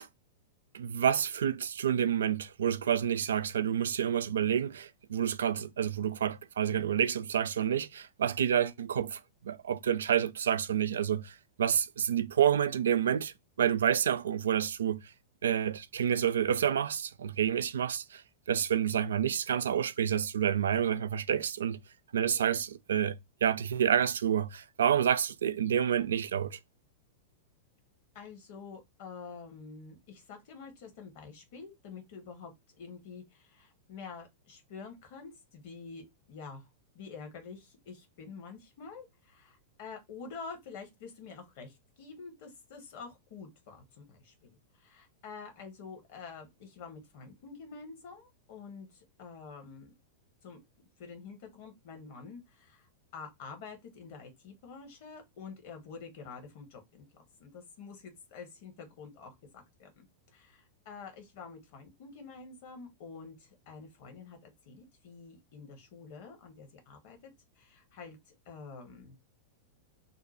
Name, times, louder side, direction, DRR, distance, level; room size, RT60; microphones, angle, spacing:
voice 1, 0.7-9.2 9.4-11.3 11.6-13.3 13.6-15.0 15.4-18.2 18.5-21.8 22.1-23.1 23.4-26.6, right 9 dB, 65° right, 0.3 m, -28 dB
voice 2, 28.1-36.7 36.9-49.9 50.4-50.6 51.0-57.0 57.4-60.1 60.3-67.3 67.6-69.2, left 5 dB, 45° left, 1.2 m, -48 dB
2.8 x 2.2 x 4.1 m
figure-of-eight pair, 95°, 0 cm